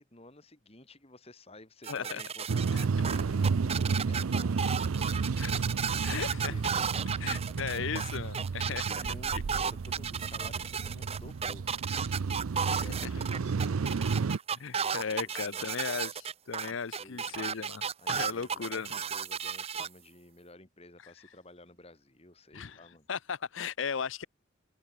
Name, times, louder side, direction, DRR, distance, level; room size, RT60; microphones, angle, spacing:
voice 1, 0.0-5.4 5.9-7.5 8.7-12.1 12.6-14.2 15.1-15.7 16.7-17.4 18.0-23.1, left 1 dB, 30° left, 3.1 m, -53 dB
sound 1, 1.8-19.9, right 6 dB, 30° right, 0.9 m, -34 dB
voice 2, 1.9-2.2 2.7-2.8 5.4-5.6 6.0-6.5 7.2-9.0 12.7-13.1 14.5-18.9 22.5-22.8 23.1-24.2, left 6 dB, 70° left, 0.6 m, -36 dB
sound 2, 2.5-14.4, right 5 dB, 90° right, 0.5 m, -32 dB
open air
head